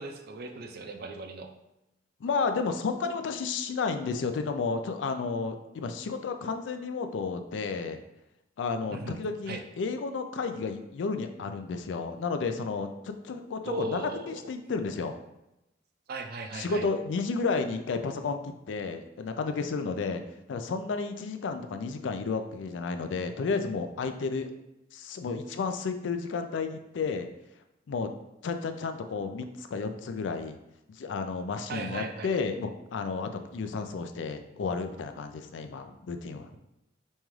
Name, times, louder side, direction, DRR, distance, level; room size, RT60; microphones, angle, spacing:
voice 1, 0.0-1.5 8.9-9.2 9.5-9.6 13.6-14.4 16.1-16.9 31.7-32.3, right 2 dB, 55° right, 5 dB, 0.4 m, -37 dB
voice 2, 2.2-8.0 8.6-15.1 16.5-20.2 20.5-24.5 24.9-27.3 27.9-28.1 28.4-30.6 30.9-36.5, left 4 dB, 80° left, 7 dB, 0.4 m, -32 dB
5.3 x 2.3 x 3.1 m, 0.89 s
head